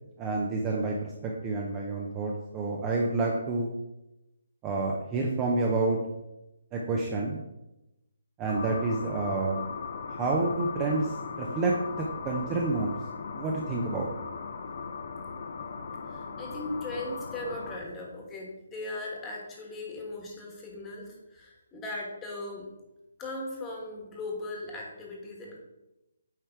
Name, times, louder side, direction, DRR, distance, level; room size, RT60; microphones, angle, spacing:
voice 1, 0.2-3.7 4.6-6.0 6.7-7.4 8.4-9.7 10.1-11.1 11.4-12.9 13.3-14.1, right 3 dB, 15° right, -1 dB, 0.6 m, -29 dB
sound 1, 8.5-17.8, left 5 dB, 50° left, 0.7 m, -38 dB
voice 2, 16.1-22.7 23.2-25.6, left 2 dB, 10° left, -2 dB, 1.3 m, -38 dB
9.1 x 3.3 x 4.5 m, 0.94 s
hypercardioid pair, 170°, 0 cm